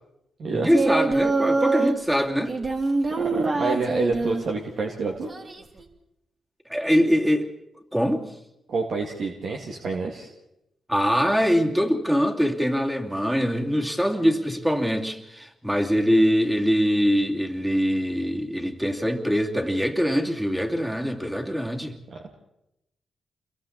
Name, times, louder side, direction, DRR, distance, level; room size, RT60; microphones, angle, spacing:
voice 1, 0.5-2.6 6.7-7.5 7.9-8.3 10.9-22.0, equal, 5° right, 2.7 m, -23 dB
Singing, 0.6-2.0 2.5-4.5 5.3-5.8, right 3 dB, 45° right, 3.0 m, -25 dB
voice 2, 3.2-5.3 8.7-10.3 22.1-22.2, right 3 dB, 70° right, 2.5 m, -28 dB
29.0 x 22.5 x 4.2 m
cardioid pair, 70°, 0 cm